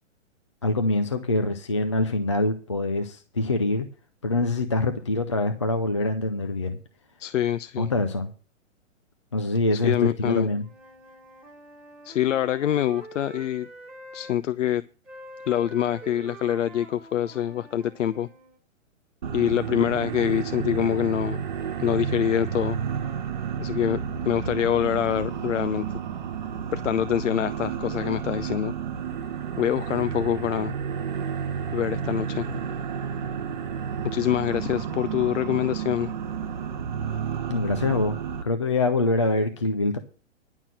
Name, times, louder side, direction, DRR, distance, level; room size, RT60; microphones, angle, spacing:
voice 1, 0.6-3.9 4.2-6.8 7.8-8.3 9.3-10.7 37.5-38.2 38.4-40.0, left 2 dB, 25° left, 0.5 m, -24 dB
voice 2, 7.2-7.9 9.7-10.5 12.0-13.7 14.1-14.8 15.5-18.3 19.3-21.4 21.8-22.8 23.6-24.0 24.3-25.9 26.7-28.7 29.6-30.7 31.7-32.5 34.1-36.1, left 10 dB, 70° left, 0.6 m, -25 dB
Wind instrument woodwind instrument, 10.4-14.4 15.0-18.6, right 2 dB, 5° right, 1.6 m, -46 dB
sound 1, 19.2-38.4, right 7 dB, 35° right, 1.2 m, -31 dB
11.0 x 5.9 x 7.4 m
hypercardioid pair, 180°, 38 cm